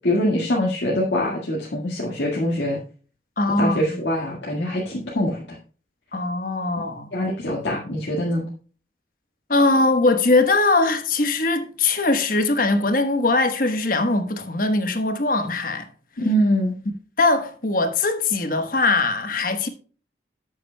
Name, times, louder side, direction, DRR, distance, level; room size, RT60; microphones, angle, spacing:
voice 1, 0.0-2.8 3.6-5.4 7.1-8.5 16.2-16.7, equal, 75° left, 1.8 m, -23 dB
voice 2, 3.4-4.0 6.1-7.1 9.5-15.9 17.2-19.7, left 2 dB, 50° left, 1.2 m, -21 dB
13.0 x 8.3 x 2.2 m
head